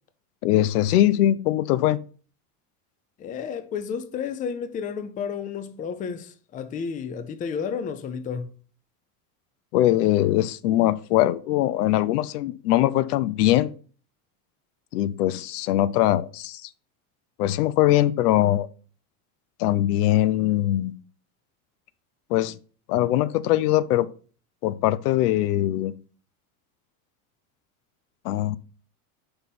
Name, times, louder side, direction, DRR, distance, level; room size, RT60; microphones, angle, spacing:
voice 1, 0.4-2.0 9.7-13.7 14.9-16.7 17.4-18.7 19.6-20.9 22.3-22.5 22.9-24.1 24.6-25.9 28.2-28.6, left 14 dB, 85° left, 0.6 m, -21 dB
voice 2, 3.2-8.5, left 6 dB, 20° left, 0.4 m, -32 dB
5.6 x 4.1 x 5.9 m
supercardioid pair, 140°, 44 cm